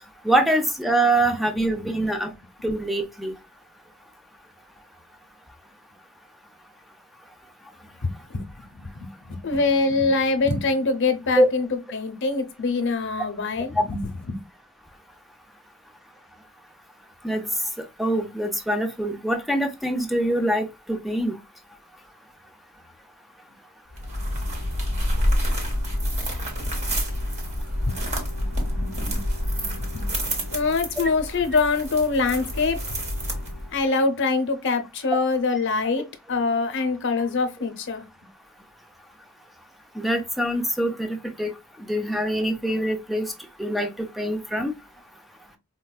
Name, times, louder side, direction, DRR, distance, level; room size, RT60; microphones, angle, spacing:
voice 1, 0.2-2.3 2.6-3.3 11.4-11.5 17.2-17.4 18.0-21.4 40.0-41.5 41.9-43.3 43.6-44.7, right 1 dB, ahead, 0.5 m, -24 dB
voice 2, 8.0-14.4 27.9-28.0 28.3-29.2 29.5-32.8 33.7-38.0, left 3 dB, 60° left, 0.7 m, -25 dB
sound 1, 23.9-33.8, equal, 35° right, 1.2 m, -28 dB
4.5 x 2.2 x 2.3 m
head